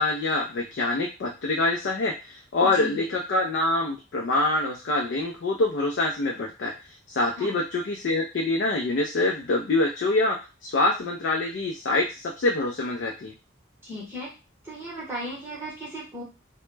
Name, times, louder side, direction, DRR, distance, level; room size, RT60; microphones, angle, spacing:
voice 1, 0.0-6.7 7.1-10.4 10.6-13.3, left 2 dB, 60° left, 0 dB, 0.4 m, -25 dB
voice 2, 2.6-3.0 7.4-7.6 13.8-14.3 14.6-16.2, equal, 10° right, -6 dB, 0.8 m, -36 dB
2.1 x 2.0 x 3.1 m, 0.30 s
head